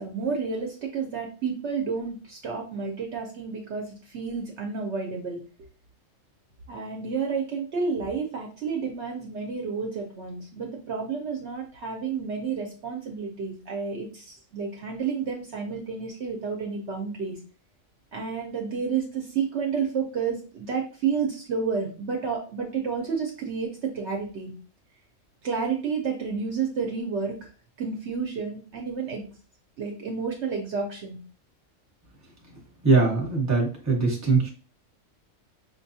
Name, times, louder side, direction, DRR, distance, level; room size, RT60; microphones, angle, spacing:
voice 1, 0.0-5.4 6.7-17.4 18.1-24.5 25.4-27.5 27.8-29.2 29.8-31.2, right 5 dB, 60° right, 1 dB, 0.9 m, -30 dB
voice 2, 32.8-34.5, right 4 dB, 15° right, 0 dB, 0.9 m, -21 dB
5.3 x 2.3 x 2.7 m, 0.37 s
omnidirectional pair, 1.4 m